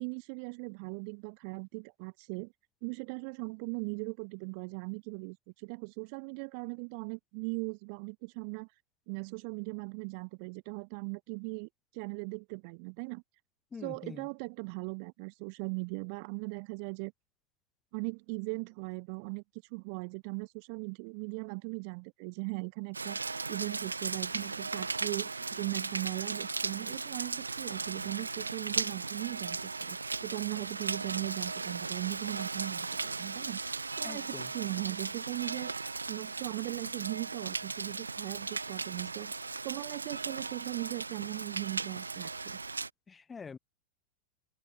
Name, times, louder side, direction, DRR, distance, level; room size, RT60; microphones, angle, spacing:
voice 1, 0.0-2.5 2.8-8.7 9.1-11.7 11.9-13.2 13.8-17.1 17.9-19.4 19.7-33.6 34.0-35.8 36.1-39.3 39.6-42.6, right 37 dB, 45° right, 3.8 m, -39 dB
voice 2, 13.7-14.2 34.0-34.5 43.1-43.6, left 5 dB, 15° left, 6.2 m, -44 dB
Rain, 22.9-42.9, right 4 dB, 80° right, 1.5 m, -37 dB
figure-of-eight pair, 90°, 0 cm